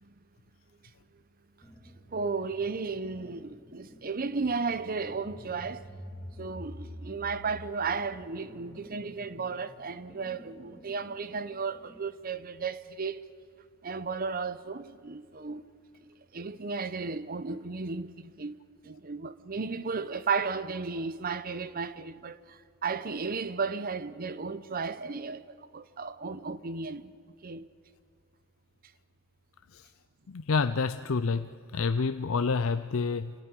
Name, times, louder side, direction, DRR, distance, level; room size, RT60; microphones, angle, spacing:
sound 1, 1.6-12.1, equal, 10° left, 4.2 m, -49 dB
voice 1, 2.1-5.9 6.4-13.2 13.8-15.6 16.1-27.1 27.4-27.7, right 4 dB, 45° right, 0.8 m, -34 dB
voice 2, 30.3-33.3, left 4 dB, 70° left, 0.6 m, -28 dB
27.0 x 15.0 x 9.9 m
head